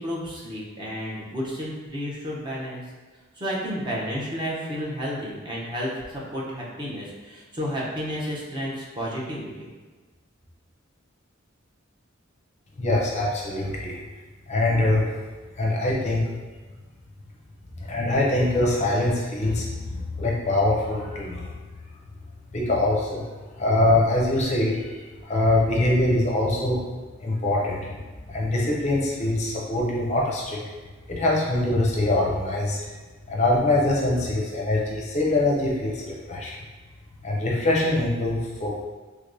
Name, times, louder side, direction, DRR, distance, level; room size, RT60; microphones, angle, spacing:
voice 1, 0.0-2.8 3.3-9.7, equal, 25° right, -5 dB, 0.6 m, -31 dB
voice 2, 12.8-14.0 14.5-15.1 15.6-16.3 17.8-21.5 22.5-23.2 23.6-26.8 27.2-27.9 28.3-30.6 31.1-32.8 33.3-36.6 37.2-38.8, left 2 dB, 35° left, -3 dB, 0.5 m, -23 dB
3.3 x 3.3 x 2.5 m, 1.3 s
head